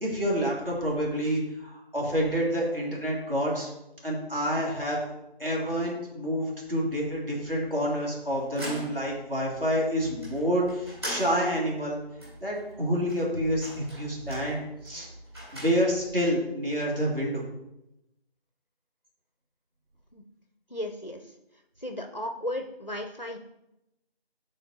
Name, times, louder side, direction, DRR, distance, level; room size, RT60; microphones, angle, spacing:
voice 1, 0.0-3.7 4.0-5.1 5.4-12.0 12.4-15.1 15.5-17.4, equal, 60° right, -3 dB, 2.5 m, -28 dB
sound 1, 8.2-16.2, equal, 25° right, 2.3 m, -42 dB
voice 2, 20.7-21.3 21.8-23.4, left 1 dB, 45° left, 6 dB, 0.4 m, -35 dB
8.5 x 4.1 x 4.1 m, 0.89 s
figure-of-eight pair, 175°, 32 cm